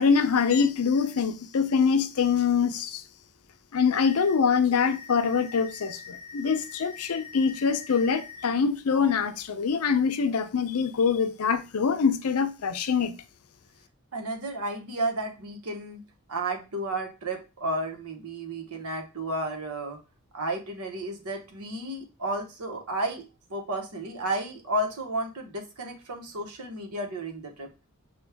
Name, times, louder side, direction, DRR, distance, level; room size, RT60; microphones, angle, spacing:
voice 1, 0.0-3.0 3.7-13.1, left 6 dB, 75° left, 0.5 m, -24 dB
sound 1, 4.0-4.3 4.8-8.4 8.9-9.1, left 5 dB, 5° right, 1.0 m, -44 dB
voice 2, 14.1-16.0 16.3-20.0 20.3-27.7, right 1 dB, 90° right, 1.0 m, -32 dB
6.1 x 2.3 x 3.4 m
head